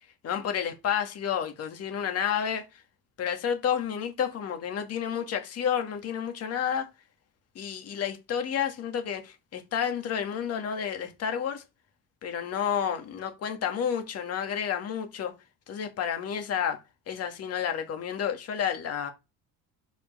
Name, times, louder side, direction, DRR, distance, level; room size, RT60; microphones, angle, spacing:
voice 1, 0.2-2.8 3.2-6.9 7.6-11.6 12.2-15.3 15.7-16.8 17.1-19.1, left 8 dB, 40° left, 1.9 m, -30 dB
5.3 x 5.0 x 6.3 m
cardioid pair, 170°, 37 cm